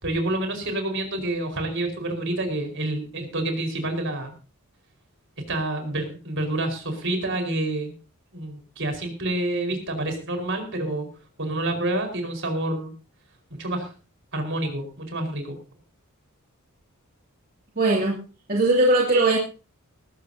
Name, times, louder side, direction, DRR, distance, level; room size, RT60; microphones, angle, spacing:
voice 1, 0.0-4.3 5.5-7.9 8.3-11.1 11.4-12.9 13.5-13.9 14.3-15.6, right 1 dB, 60° right, 4 dB, 4.9 m, -28 dB
voice 2, 17.8-18.2 18.5-19.4, right 2 dB, 40° right, -2 dB, 2.7 m, -19 dB
19.5 x 14.5 x 2.8 m, 0.34 s
head